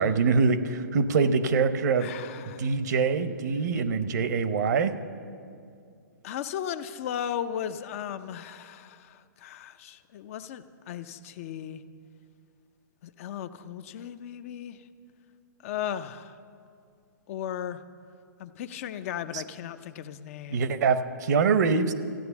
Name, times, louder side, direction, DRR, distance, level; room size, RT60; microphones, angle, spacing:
voice 1, 0.0-2.1 2.6-4.9 19.3-19.4 20.5-21.9, right 5 dB, 60° right, 12 dB, 0.9 m, -24 dB
voice 2, 2.0-2.7 6.2-11.9 13.0-14.8 15.6-16.3 17.3-17.8 18.4-20.8, left 9 dB, 45° left, 11 dB, 0.5 m, -36 dB
14.5 x 9.4 x 7.0 m, 2.3 s
hypercardioid pair, 135°, 11 cm